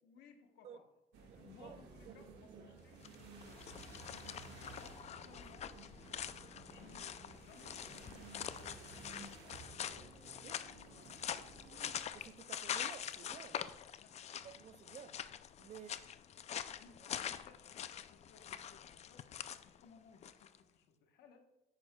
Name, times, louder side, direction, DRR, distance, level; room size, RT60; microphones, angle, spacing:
voice 1, 0.0-0.9 1.2-3.1 3.4-3.6 4.6-5.7 6.7-9.5 11.6-11.8 13.6-14.2 16.7-19.3 19.6-21.5, left 6 dB, 80° left, 1.1 m, -62 dB
sound 1, 1.1-12.0, right 4 dB, 85° right, 1.6 m, -55 dB
voice 2, 1.3-1.8 2.1-2.2 10.4-10.6 12.1-13.6 14.4-15.2 15.6-16.0, right 8 dB, 45° right, 0.4 m, -53 dB
sound 2, 2.9-20.6, left 9 dB, 40° left, 0.4 m, -45 dB
10.5 x 8.6 x 2.3 m
cardioid pair, 110°, 17 cm